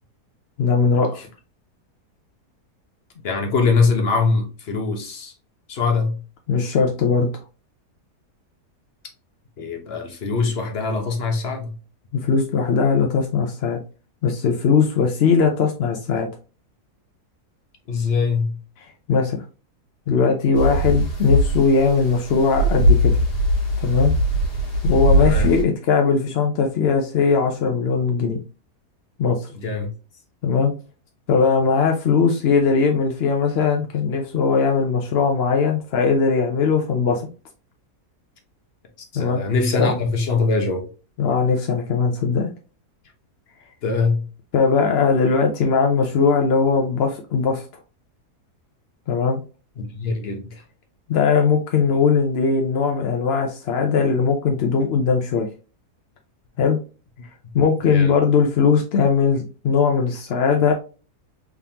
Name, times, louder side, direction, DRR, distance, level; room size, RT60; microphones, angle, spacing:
voice 1, 0.6-1.3 6.5-7.3 12.1-13.8 14.2-16.3 19.1-19.4 20.1-23.1 23.8-24.1 24.8-28.4 29.2-29.5 30.4-30.7 31.3-37.3 39.1-39.4 39.8-39.9 41.2-42.5 44.5-47.7 49.1-49.4 51.1-55.5 56.6-56.8 57.5-60.7, left 5 dB, 65° left, 0.6 m, -19 dB
voice 2, 3.2-5.3 5.7-6.2 9.6-11.7 17.9-18.6 25.2-25.5 29.5-29.9 39.1-40.9 43.8-44.3 49.8-50.6 57.4-57.6 57.9-58.1, left 4 dB, 45° left, 1.0 m, -22 dB
sound 1, 20.5-25.6, equal, 85° left, 1.8 m, -20 dB
3.6 x 3.5 x 2.8 m
omnidirectional pair, 1.7 m